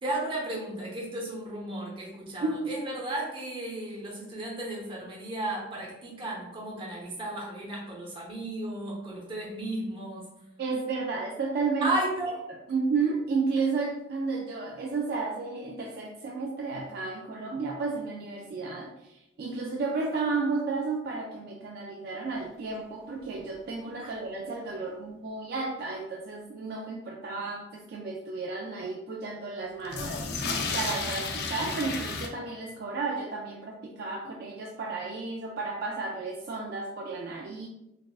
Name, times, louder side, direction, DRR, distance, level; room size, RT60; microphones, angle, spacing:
voice 1, 0.0-10.3 11.8-12.4, right 1 dB, 30° right, -4 dB, 1.0 m, -34 dB
voice 2, 10.6-11.9 12.5-30.4 30.7-37.7, right 4 dB, 55° right, 0 dB, 0.3 m, -32 dB
sound 1, 22.8-22.9 23.1-23.2 23.4-23.5 24.2-24.3 29.8-32.3, left 4 dB, 60° left, 0.5 m, -32 dB
4.0 x 2.4 x 2.3 m, 0.89 s
head